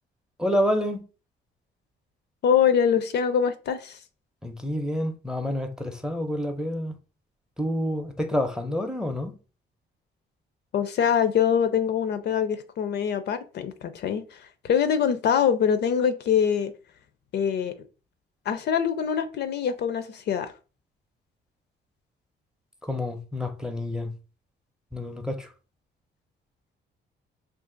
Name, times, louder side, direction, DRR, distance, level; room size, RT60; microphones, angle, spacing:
voice 1, 0.4-1.0 4.4-6.9 7.6-9.4 22.8-24.1 24.9-25.5, left 1 dB, 5° right, 0.5 m, -28 dB
voice 2, 2.4-4.0 10.7-14.4 14.6-16.7 17.3-17.7 18.5-20.5, left 8 dB, 60° left, 0.4 m, -24 dB
2.5 x 2.5 x 3.7 m
cardioid pair, 90°, 20 cm